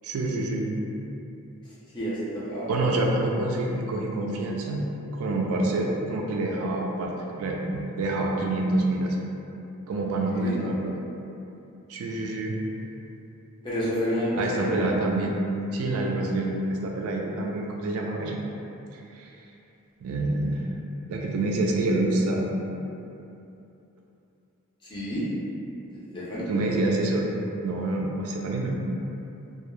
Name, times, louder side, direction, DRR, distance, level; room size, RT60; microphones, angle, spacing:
voice 1, 0.0-0.8 2.7-4.8 5.1-9.3 9.9-10.9 11.9-12.5 14.4-15.3 15.7-18.4 19.1-19.3 20.0-20.6 21.1-22.5 26.5-27.3 27.6-28.8, right 2 dB, 70° right, -1 dB, 0.3 m, -27 dB
voice 2, 1.9-3.0 10.3-10.6 13.6-14.9 24.8-25.3 25.9-26.5, equal, 20° left, -9 dB, 0.5 m, -30 dB
2.2 x 2.0 x 3.0 m, 2.8 s
head